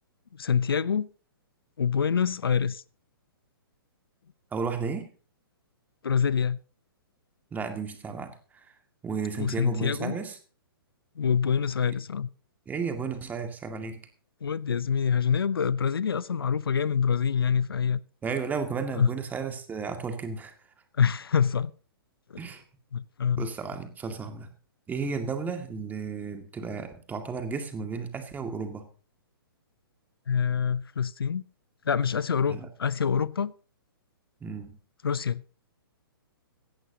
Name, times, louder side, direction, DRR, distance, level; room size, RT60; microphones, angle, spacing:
voice 1, 0.4-1.1 1.8-2.8 6.0-6.6 9.4-10.2 11.2-12.3 14.4-18.0 19.0-19.1 21.0-21.7 22.9-23.5 30.3-31.4 31.9-33.5 35.0-35.4, left 7 dB, 75° left, 0.6 m, -26 dB
voice 2, 4.5-5.1 7.5-8.7 9.0-10.4 11.9-12.0 12.7-14.0 18.2-20.5 22.4-22.6 23.4-24.5 24.9-28.9 32.5-32.7 34.4-34.8, right 5 dB, 15° right, 2.0 m, -33 dB
17.0 x 14.0 x 2.8 m
figure-of-eight pair, 120°, 12 cm